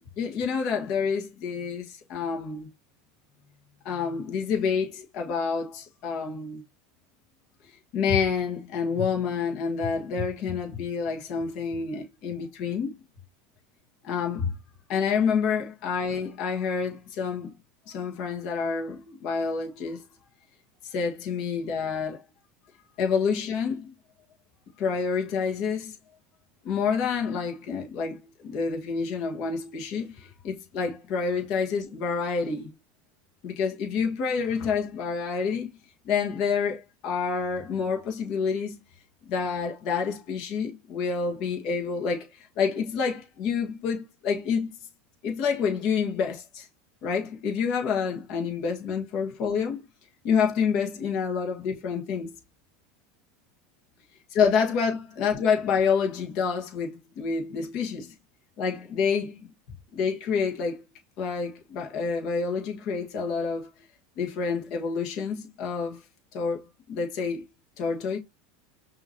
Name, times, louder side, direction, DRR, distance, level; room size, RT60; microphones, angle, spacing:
voice 1, 0.2-2.7 3.8-6.6 7.9-12.9 14.0-14.5 14.9-17.5 17.9-20.0 20.8-22.2 23.0-23.9 24.8-25.9 26.6-32.7 33.4-35.7 36.0-38.8 39.3-44.7 45.2-46.7 47.0-49.8 50.2-52.3 54.3-58.1 58.6-59.4 59.9-60.8 61.2-63.7 64.2-66.0 66.3-66.6 66.9-67.4 67.8-68.2, left 6 dB, 55° left, 1.5 m, -28 dB
5.8 x 2.9 x 2.8 m
supercardioid pair, 125°, 0 cm